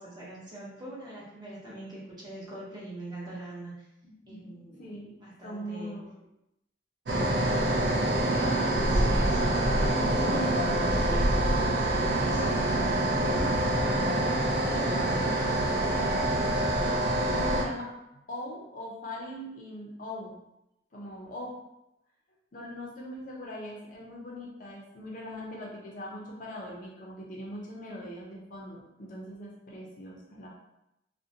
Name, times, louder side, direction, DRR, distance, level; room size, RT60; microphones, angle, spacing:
voice 1, 0.0-3.7 4.3-4.9 5.1-6.0 7.1-11.4 11.9-12.6, right 1 dB, 20° right, -7 dB, 0.8 m, -43 dB
voice 2, 4.0-6.1 10.3-10.9 12.2-12.7 13.1-16.3 17.3-18.0 18.3-20.4 20.9-21.6 22.5-30.5, equal, 45° left, -2 dB, 0.5 m, -40 dB
sound 1, 7.1-17.6, right 1 dB, 60° right, 0.4 m, -26 dB
2.5 x 2.0 x 2.7 m, 0.87 s
head